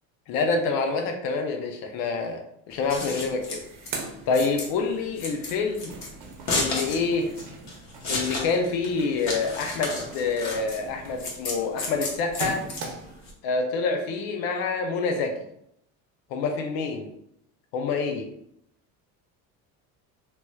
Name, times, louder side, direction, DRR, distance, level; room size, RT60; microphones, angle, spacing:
voice 1, 0.3-2.4 2.7-3.6 4.3-5.9 6.5-7.3 8.1-12.6 13.4-15.3 16.3-17.1 17.7-18.3, left 4 dB, 75° left, 4 dB, 0.6 m, -27 dB
Scissors, 2.7-13.3, left 2 dB, 50° left, 1.0 m, -33 dB
Rolling a suitcase on tiles, 3.5-5.0 5.4-13.3, right 3 dB, 65° right, 0.8 m, -41 dB
3.0 x 2.9 x 2.3 m, 0.74 s
cardioid pair, 125°, 35 cm